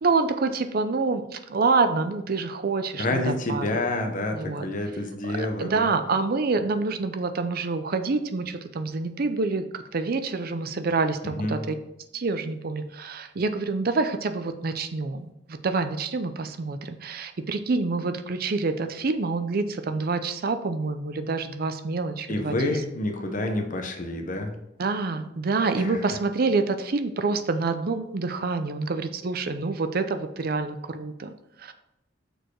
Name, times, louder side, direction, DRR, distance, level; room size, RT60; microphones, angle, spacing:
voice 1, 0.0-3.7 4.3-4.7 5.3-11.8 12.1-22.8 24.8-31.7, right 3 dB, 55° right, 9 dB, 0.5 m, -27 dB
voice 2, 3.0-5.9 11.4-11.6 22.3-24.6 25.8-26.0, left 2 dB, 45° left, 4 dB, 1.0 m, -28 dB
6.6 x 4.7 x 4.6 m, 0.86 s
head